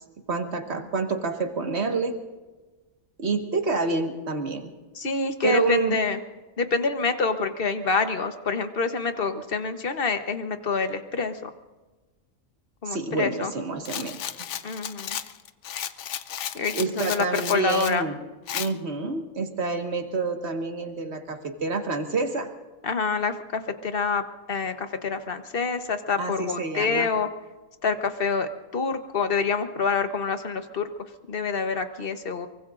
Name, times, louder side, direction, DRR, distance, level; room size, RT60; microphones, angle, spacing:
voice 1, 0.3-2.2 3.2-4.7 5.4-6.0 12.9-14.5 16.7-18.2 18.5-22.5 26.2-27.1, right 3 dB, 50° right, 4 dB, 1.8 m, -28 dB
voice 2, 4.9-6.2 6.6-11.5 12.8-13.5 14.6-15.2 16.5-18.1 22.8-27.3 27.8-30.9 31.3-32.5, left 4 dB, 45° left, 8 dB, 1.2 m, -27 dB
Rattle, 13.8-18.0 18.5-18.7, left 9 dB, 65° left, 1.0 m, -34 dB
24.0 x 23.5 x 2.5 m, 1.2 s
omnidirectional pair, 1.4 m